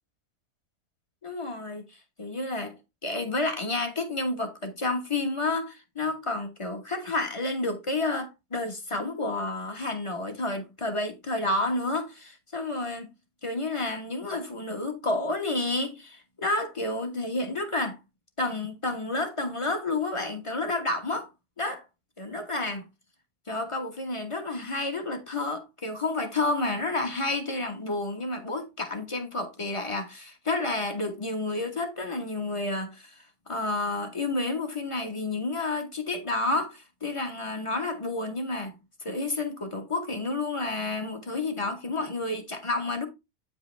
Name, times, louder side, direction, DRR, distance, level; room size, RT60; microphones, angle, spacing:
voice 1, 1.2-13.1 13.4-18.0 18.4-21.3 21.6-21.8 22.2-22.8 23.5-43.1, left 2 dB, 20° left, 1.4 m, -30 dB
9.1 x 5.2 x 3.4 m
omnidirectional pair, 1.6 m